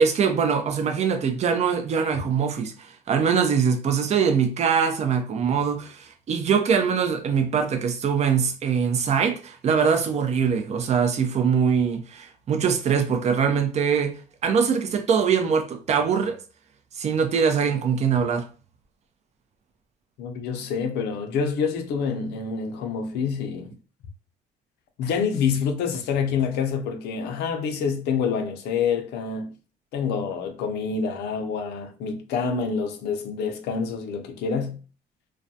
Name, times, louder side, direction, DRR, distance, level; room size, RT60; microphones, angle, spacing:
voice 1, 0.0-14.1 14.4-16.4 17.0-18.5, right 6 dB, 40° right, 0.5 m, -23 dB
voice 2, 20.2-23.7 25.0-29.5 29.9-34.8, left 6 dB, 80° left, 0.5 m, -27 dB
2.3 x 2.2 x 2.6 m
cardioid pair, 110°, 17 cm